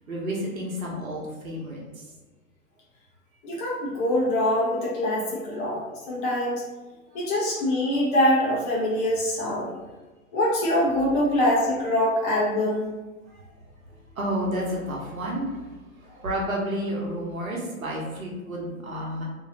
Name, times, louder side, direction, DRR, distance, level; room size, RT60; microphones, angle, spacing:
voice 1, 0.1-2.0 7.1-7.2 13.3-13.5 13.9-19.2, equal, 70° right, -3 dB, 1.1 m, -31 dB
voice 2, 3.4-6.6 7.1-9.7 10.3-12.9, left 1 dB, 35° left, -4 dB, 1.2 m, -24 dB
3.0 x 3.0 x 2.8 m, 1.2 s
figure-of-eight pair, 105°, 42 cm